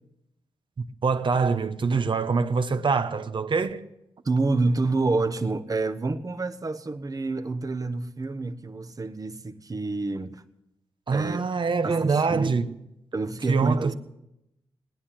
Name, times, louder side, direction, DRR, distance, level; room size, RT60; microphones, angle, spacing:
voice 1, 1.0-3.8 11.1-12.7 13.5-13.9, right 5 dB, 55° right, 1.0 m, -24 dB
voice 2, 4.2-10.4 11.1-11.4 11.8-12.5 13.1-13.9, right 3 dB, 35° right, 1.2 m, -28 dB
19.5 x 9.9 x 7.4 m
cardioid pair, 70°, 10 cm